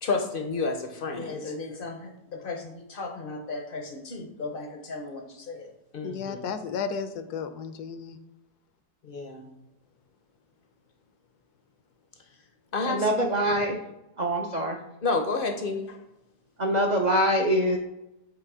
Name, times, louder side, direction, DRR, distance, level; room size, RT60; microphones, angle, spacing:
voice 1, 0.0-6.5 9.0-9.5 12.7-13.1 15.0-16.0, left 3 dB, 55° left, 4 dB, 0.6 m, -32 dB
voice 2, 6.0-8.2, left 6 dB, 80° left, 10 dB, 1.1 m, -33 dB
voice 3, 12.8-13.8 14.2-14.8 16.6-17.8, equal, 60° right, 1 dB, 0.4 m, -24 dB
8.2 x 3.0 x 4.7 m, 0.92 s
omnidirectional pair, 1.7 m